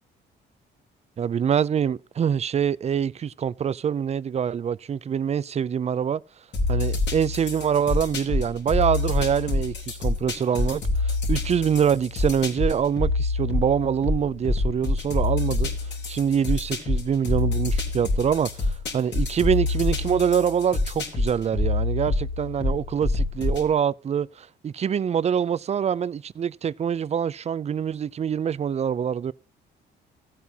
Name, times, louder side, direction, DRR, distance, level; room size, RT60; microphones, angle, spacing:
voice 1, 1.2-6.2 6.7-15.7 16.1-29.3, right 8 dB, 35° right, 0.4 m, -25 dB
sound 1, 6.5-23.7, left 3 dB, 60° left, 3.4 m, -26 dB
15.5 x 8.3 x 2.8 m
cardioid pair, 90°, 20 cm